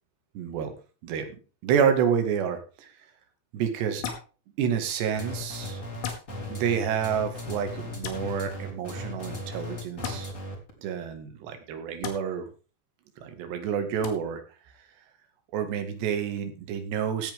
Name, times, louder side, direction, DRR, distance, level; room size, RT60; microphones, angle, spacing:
voice 1, 0.4-0.7 1.0-1.3 1.6-2.9 3.5-4.1 4.6-5.8 6.5-10.3 10.8-12.5 13.2-14.4 15.5-17.3, right 7 dB, 70° right, 7 dB, 3.9 m, -28 dB
sound 1, 4.0-4.3 6.0-6.2 8.0-8.2 10.0-10.2 12.0-12.2 14.0-14.1, left 7 dB, 80° left, 4.6 m, -34 dB
sound 2, 5.1-10.7, left 1 dB, 20° left, 2.8 m, -37 dB
16.0 x 9.6 x 3.6 m, 0.34 s
omnidirectional pair, 5.3 m